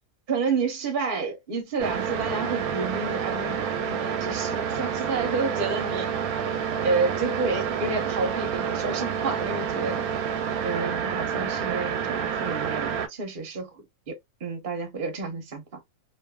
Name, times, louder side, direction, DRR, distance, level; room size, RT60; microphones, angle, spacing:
voice 1, 0.3-6.1 6.8-10.0 10.6-13.7 14.1-14.2 14.4-15.6, right 4 dB, 45° right, 0.8 m, -30 dB
sound 1, 1.8-13.1, right 7 dB, 85° right, 1.1 m, -28 dB
2.6 x 2.5 x 2.2 m
omnidirectional pair, 1.5 m